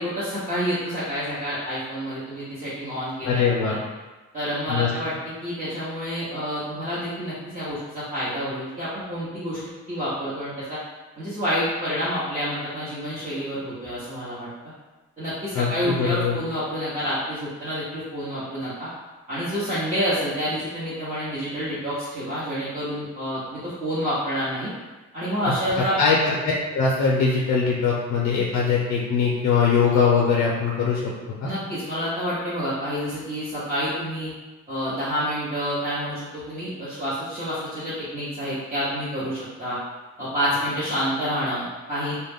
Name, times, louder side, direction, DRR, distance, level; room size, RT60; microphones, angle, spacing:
voice 1, 0.0-3.8 4.3-5.1 5.4-9.6 9.9-10.8 11.2-14.5 15.2-18.9 19.3-24.7 25.1-26.0 31.4-34.3 34.7-39.8 40.2-42.1, equal, 25° right, -11 dB, 0.9 m, -28 dB
voice 2, 3.2-3.8 4.7-4.9 15.5-16.4 26.0-31.1 31.4-31.5, left 5 dB, 70° left, -3 dB, 0.5 m, -21 dB
2.2 x 2.1 x 3.4 m, 1.2 s
cardioid pair, 90°, 30 cm